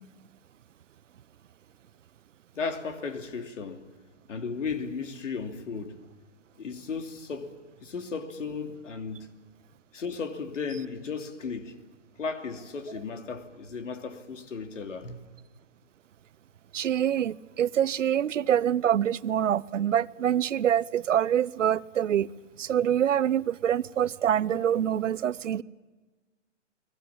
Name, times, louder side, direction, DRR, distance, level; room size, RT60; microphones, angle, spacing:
voice 1, 2.5-3.9 4.3-6.0 6.6-7.6 7.8-9.3 9.9-11.8 12.2-15.2, left 5 dB, 85° left, 2.9 m, -35 dB
voice 2, 16.7-22.3 22.6-25.6, right 10 dB, 85° right, 0.8 m, -25 dB
30.0 x 21.0 x 7.3 m
hypercardioid pair, 155°, 37 cm